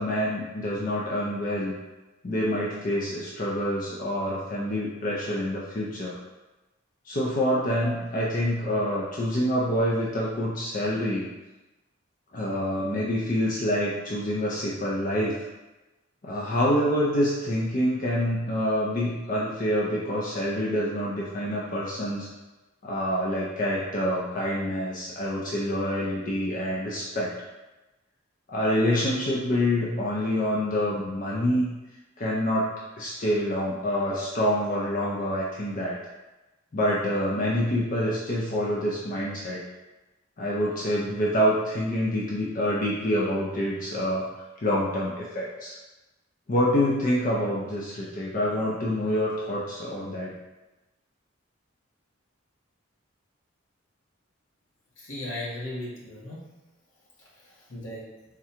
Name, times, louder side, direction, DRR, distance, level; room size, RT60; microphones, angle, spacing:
voice 1, 0.0-1.7 2.2-6.2 7.1-11.3 12.3-15.3 16.2-22.3 22.8-27.3 28.5-31.7 32.2-32.7 32.9-36.0 36.7-39.6 40.4-44.3 44.6-45.8 46.5-50.3, equal, 40° left, -5 dB, 0.5 m, -26 dB
voice 2, 55.0-56.4 57.4-58.0, left 1 dB, 80° left, -5 dB, 1.2 m, -36 dB
3.6 x 2.2 x 4.3 m, 1.1 s
head